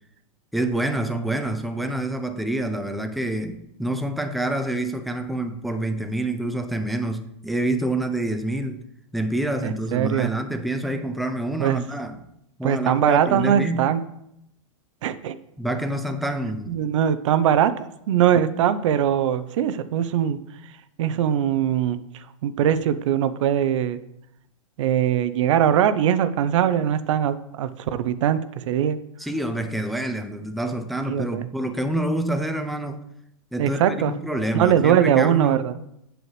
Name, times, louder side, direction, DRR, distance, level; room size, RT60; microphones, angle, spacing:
voice 1, 0.5-8.8 9.1-12.3 12.6-13.8 15.6-16.9 29.2-33.1 33.5-35.7, right 1 dB, ahead, 0.5 m, -27 dB
voice 2, 9.6-10.3 11.6-11.8 12.6-14.0 15.0-15.4 16.7-17.7 18.1-20.4 21.0-24.0 24.8-29.0 31.1-31.5 33.6-34.1 34.5-35.7, right 9 dB, 70° right, 0.6 m, -21 dB
7.8 x 7.7 x 3.2 m
hypercardioid pair, 125°, 17 cm